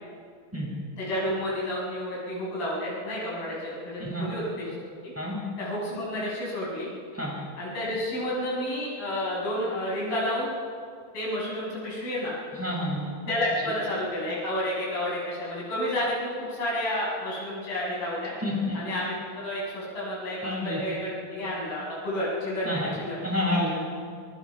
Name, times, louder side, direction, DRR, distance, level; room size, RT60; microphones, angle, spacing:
voice 1, 1.0-4.7 5.0-5.1 5.6-6.9 7.6-10.5 11.1-12.3 13.3-18.3 18.7-23.2, left 1 dB, 70° left, -6 dB, 8.6 m, -30 dB
voice 2, 12.5-13.0 18.4-18.8 20.4-20.8 22.6-22.9 23.2-23.7, left 1 dB, 5° right, -5 dB, 7.2 m, -28 dB
29.5 x 20.0 x 5.2 m, 2.1 s
omnidirectional pair, 4.2 m